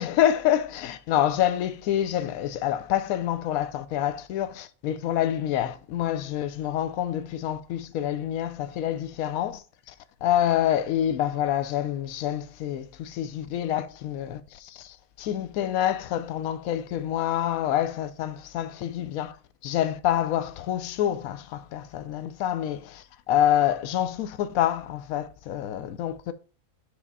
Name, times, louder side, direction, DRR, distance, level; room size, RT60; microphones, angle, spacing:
voice 1, 0.0-9.9 10.2-19.4 19.6-26.3, left 11 dB, 75° left, 1.0 m, -27 dB
4.9 x 3.6 x 5.4 m
omnidirectional pair, 1.5 m